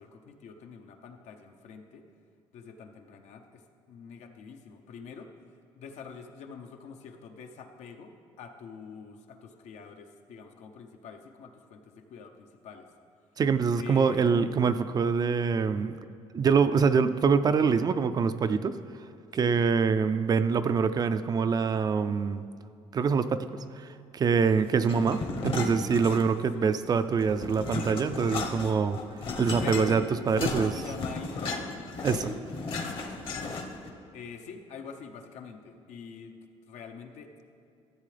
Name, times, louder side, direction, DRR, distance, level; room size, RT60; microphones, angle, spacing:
voice 1, 0.0-2.0 2.5-3.6 3.9-5.3 5.8-12.9 13.8-14.6 19.4-19.6 26.5-26.7 29.6-30.1 30.7-31.7 34.1-36.4 36.7-37.3, left 6 dB, 75° left, 5 dB, 0.8 m, -45 dB
voice 2, 13.4-16.0 16.3-18.8 19.3-22.4 22.9-23.5 23.8-29.0 29.4-30.8 32.0-32.3, right 5 dB, 35° right, 11 dB, 0.3 m, -25 dB
sound 1, 24.8-26.5 26.9-33.9, left 3 dB, 50° left, 1.0 m, -35 dB
13.5 x 7.6 x 3.3 m, 2.5 s
cardioid pair, 105°, 12 cm